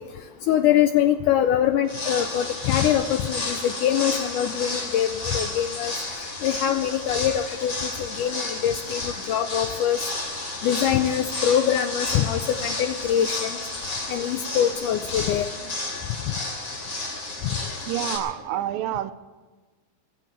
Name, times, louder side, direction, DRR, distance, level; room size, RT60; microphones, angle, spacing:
voice 1, 0.5-5.9 6.4-10.0 10.6-13.6 14.1-15.5, left 10 dB, 85° left, 9 dB, 1.8 m, -23 dB
sound 1, 1.8-18.2, left 2 dB, 35° left, 3.3 m, -32 dB
voice 2, 17.9-19.1, right 12 dB, 80° right, 12 dB, 2.2 m, -29 dB
20.5 x 7.6 x 8.6 m, 1.3 s
omnidirectional pair, 4.2 m